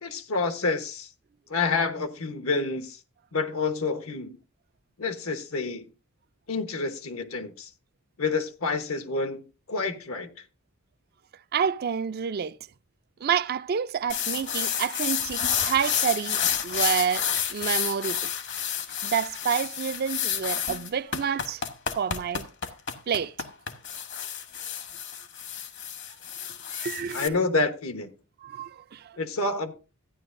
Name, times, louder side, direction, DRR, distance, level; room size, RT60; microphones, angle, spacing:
voice 1, 0.0-1.1 1.5-3.0 3.3-4.4 5.0-5.8 6.5-7.7 8.2-9.4 9.7-10.3 27.1-28.1 29.2-29.7, left 3 dB, 80° left, 1.1 m, -28 dB
voice 2, 11.5-12.6 13.2-18.2 19.0-21.6 22.0-22.5 23.1-23.3 26.7-27.4 28.4-29.2, right 7 dB, 45° right, 0.4 m, -28 dB
sound 1, 14.1-27.3, left 8 dB, 55° left, 1.1 m, -30 dB
14.0 x 9.8 x 2.6 m
head